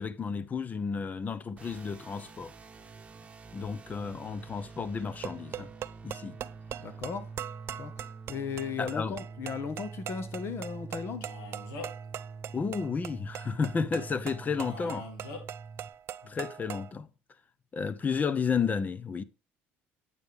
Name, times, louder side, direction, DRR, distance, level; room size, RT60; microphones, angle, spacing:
voice 1, 0.0-2.5 3.5-5.7 6.0-6.4 8.8-9.2 12.5-15.1 16.3-17.1 17.7-19.2, left 5 dB, 30° left, 0.8 m, -32 dB
sound 1, 1.6-15.9, right 4 dB, 25° right, 1.2 m, -46 dB
sound 2, 5.0-16.9, right 10 dB, 55° right, 0.5 m, -42 dB
voice 2, 6.8-7.3 7.8-11.3 16.2-16.3, left 6 dB, 50° left, 1.4 m, -36 dB
Male speech man speaking, 11.2-12.1 14.6-15.4, left 3 dB, 85° left, 2.0 m, -43 dB
9.1 x 8.4 x 3.4 m
supercardioid pair, 90°, 5 cm